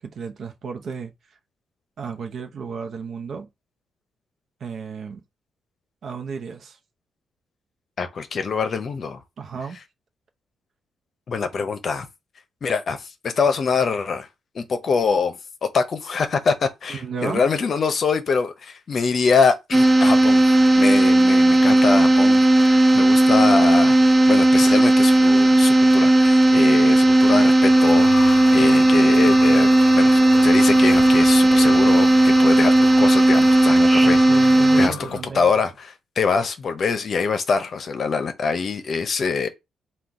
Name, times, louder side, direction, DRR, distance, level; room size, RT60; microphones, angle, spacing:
voice 1, 0.0-1.1 2.0-3.5 4.6-5.2 6.0-6.8 9.4-9.8 16.9-17.4 34.0-35.5, right 5 dB, 60° right, 0.7 m, -33 dB
voice 2, 8.0-9.2 11.3-12.1 12.6-14.3 14.5-15.4 15.7-20.4 20.7-24.0 24.3-39.5, left 5 dB, 50° left, 0.7 m, -24 dB
sound 1, 19.7-34.9, right 1 dB, 20° right, 0.3 m, -15 dB
sound 2, 27.2-35.2, left 8 dB, 75° left, 0.3 m, -34 dB
3.8 x 2.3 x 4.6 m
cardioid pair, 95°, 0 cm